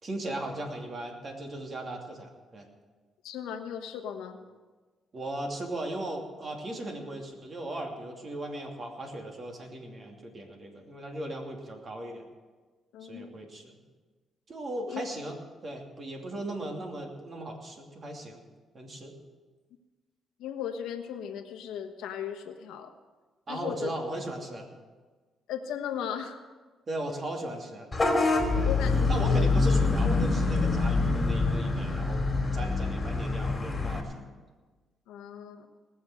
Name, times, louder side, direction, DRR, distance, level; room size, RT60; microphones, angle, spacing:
voice 1, 0.0-2.7 5.1-12.3 13.0-13.7 14.5-15.3 15.6-18.4 18.7-19.1 23.5-24.7 26.9-27.9 28.5-28.7 29.1-32.2 32.5-34.2, right 1 dB, 40° right, 2 dB, 2.8 m, -37 dB
voice 2, 3.2-4.5 12.9-13.3 14.7-15.0 20.4-22.9 23.5-23.9 25.5-26.4 28.5-29.5 35.1-35.7, left 8 dB, 90° left, 7 dB, 1.2 m, -37 dB
Vehicle horn car horn honking / Bus, 27.9-34.0, left 3 dB, 20° left, 2.7 m, -25 dB
19.5 x 7.0 x 7.8 m, 1.3 s
cardioid pair, 90°, 0 cm